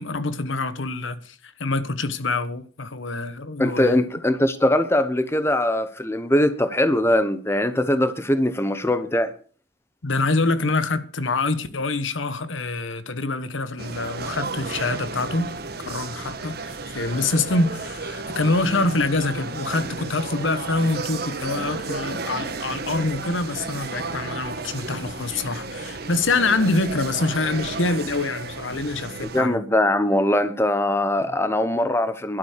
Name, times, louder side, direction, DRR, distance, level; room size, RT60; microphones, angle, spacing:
voice 1, 0.0-4.0 10.0-15.5 15.8-29.6, left 3 dB, 75° left, 1.2 m, -25 dB
voice 2, 3.6-9.3 29.3-32.4, left 1 dB, 15° left, 1.0 m, -21 dB
sound 1, 13.8-29.4, right 3 dB, 50° right, 1.4 m, -33 dB
sound 2, 19.6-26.6, right 1 dB, 55° left, 4.5 m, -46 dB
11.5 x 9.0 x 6.6 m
head